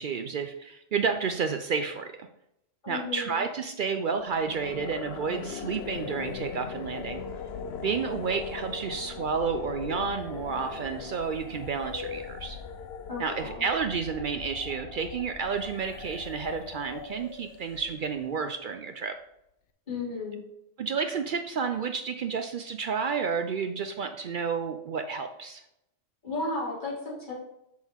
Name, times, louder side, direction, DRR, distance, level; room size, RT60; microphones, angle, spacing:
voice 1, 0.0-2.3 2.9-7.2 7.8-12.6 13.2-19.2 20.8-25.6, right 5 dB, 65° right, 7 dB, 0.5 m, -31 dB
voice 2, 2.8-3.4 13.1-13.7 19.9-20.4 26.2-27.3, left 3 dB, 35° left, -7 dB, 3.0 m, -34 dB
sound 1, 4.2-18.3, left 6 dB, 60° left, 0.8 m, -40 dB
6.2 x 6.2 x 3.5 m, 0.82 s
omnidirectional pair, 1.3 m